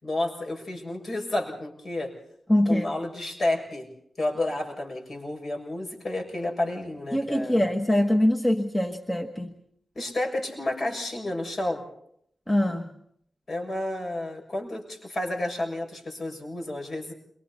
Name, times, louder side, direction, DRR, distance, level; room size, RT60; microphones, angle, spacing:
voice 1, 0.0-2.1 2.7-3.9 4.2-7.6 9.9-11.8 13.5-17.1, left 1 dB, 50° left, 1 dB, 6.8 m, -31 dB
voice 2, 2.5-2.9 7.1-9.5 12.5-12.8, left 1 dB, 15° left, 5 dB, 1.5 m, -23 dB
28.5 x 24.5 x 4.3 m, 0.70 s
cardioid pair, 65°, 0 cm